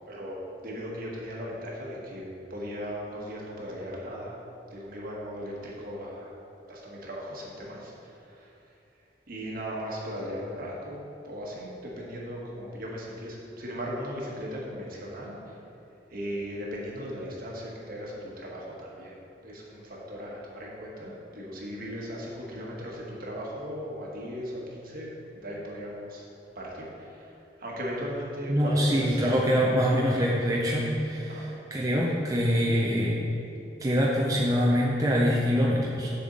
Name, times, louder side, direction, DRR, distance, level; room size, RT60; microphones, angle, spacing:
voice 1, 0.1-4.4 4.7-6.3 6.7-8.5 9.3-15.6 16.1-26.2 26.5-29.3 31.3-31.6, equal, 55° right, -3 dB, 1.4 m, -37 dB
voice 2, 28.5-33.2 33.8-36.1, equal, 20° right, -4 dB, 0.7 m, -24 dB
7.0 x 7.0 x 3.9 m, 2.8 s
head